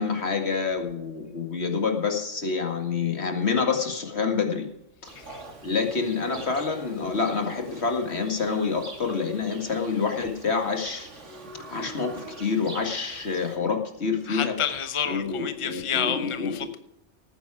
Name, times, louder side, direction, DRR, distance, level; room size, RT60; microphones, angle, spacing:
voice 1, 0.0-4.7 5.6-11.1 11.7-14.6 15.1-16.7, left 5 dB, 55° left, 2.2 m, -27 dB
Livestock farm animals working animals, 5.0-13.6, right 2 dB, 70° right, 2.6 m, -44 dB
voice 2, 14.3-16.8, left 8 dB, 30° left, 0.9 m, -29 dB
18.0 x 9.8 x 4.9 m
omnidirectional pair, 1.3 m